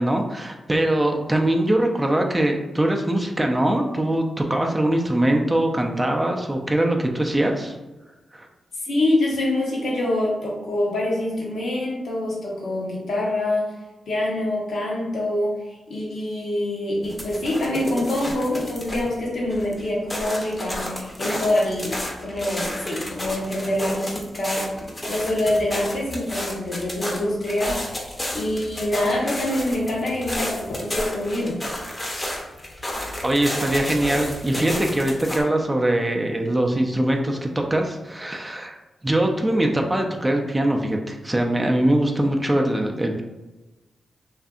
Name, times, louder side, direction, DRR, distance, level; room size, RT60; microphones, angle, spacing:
voice 1, 0.0-7.8 8.3-8.5 33.2-38.8 39.0-43.2, right 1 dB, 20° right, 2 dB, 0.4 m, -22 dB
voice 2, 8.8-13.7 14.1-27.9 28.3-31.6, left 1 dB, 75° left, -4 dB, 0.8 m, -25 dB
sound 1, 17.0-19.2 19.5-35.4, left 1 dB, 25° left, 0.6 m, -32 dB
2.6 x 2.4 x 2.4 m, 1.1 s
cardioid pair, 55°, 0 cm